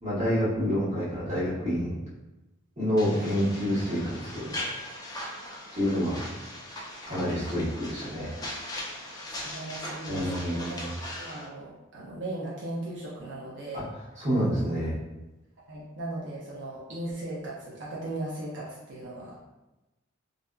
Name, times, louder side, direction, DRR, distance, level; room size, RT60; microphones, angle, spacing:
voice 1, 0.0-2.0 2.8-4.5 5.7-6.2 7.0-8.4 10.1-10.8 13.7-13.8 14.2-14.9, equal, 35° right, -10 dB, 1.2 m, -28 dB
sound 1, 3.0-11.5, left 1 dB, 20° left, 0.3 m, -39 dB
voice 2, 9.4-10.9 11.2-13.8 15.7-19.4, right 2 dB, 60° right, -6 dB, 0.5 m, -37 dB
2.6 x 2.4 x 2.2 m, 1.0 s
head